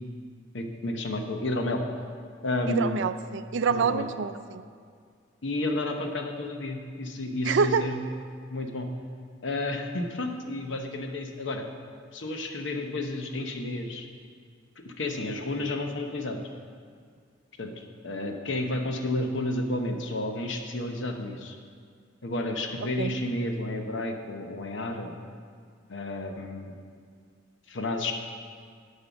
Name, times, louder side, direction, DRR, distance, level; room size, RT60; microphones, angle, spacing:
voice 1, 0.5-1.8 2.4-3.0 3.7-4.1 5.4-8.0 8.5-8.9 9.4-11.6 12.1-14.1 14.8-16.5 17.6-21.6 22.2-25.1 25.9-26.7 27.7-28.1, left 2 dB, 65° left, 4 dB, 0.9 m, -31 dB
voice 2, 2.7-4.6 7.4-7.8 23.0-23.1, right 5 dB, 65° right, 12 dB, 0.4 m, -26 dB
9.9 x 5.5 x 7.0 m, 2.1 s
head